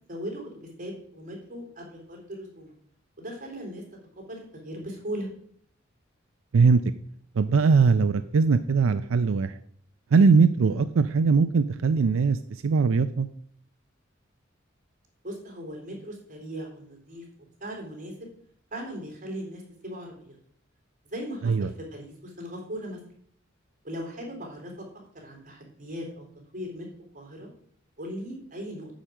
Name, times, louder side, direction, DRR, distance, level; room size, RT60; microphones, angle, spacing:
voice 1, 0.1-0.5 0.8-2.7 3.2-3.8 4.3-5.3 10.7-10.9 15.2-17.2 17.6-18.1 18.7-20.4 21.1-23.0 23.8-24.9 25.1-26.3 26.5-26.9 27.1-27.5 28.0-28.9, equal, 40° right, 0 dB, 3.6 m, -38 dB
voice 2, 7.4-9.5 10.1-12.4 12.6-13.3 21.4-21.7, right 4 dB, 90° right, 11 dB, 0.4 m, -20 dB
9.0 x 5.1 x 7.3 m, 0.63 s
head